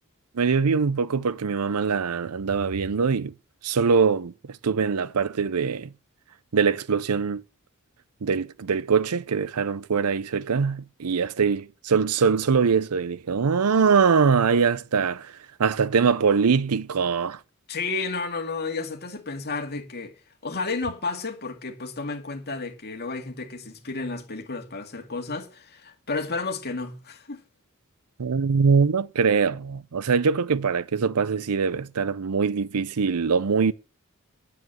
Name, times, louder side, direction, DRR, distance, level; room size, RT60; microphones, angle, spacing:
voice 1, 0.3-3.3 3.6-4.3 4.6-5.9 6.5-7.4 8.2-15.3 15.6-17.4 28.2-33.7, right 5 dB, 90° right, 0.6 m, -23 dB
voice 2, 17.7-20.1 20.4-27.4, left 3 dB, 45° left, 2.2 m, -32 dB
9.7 x 7.9 x 7.7 m
head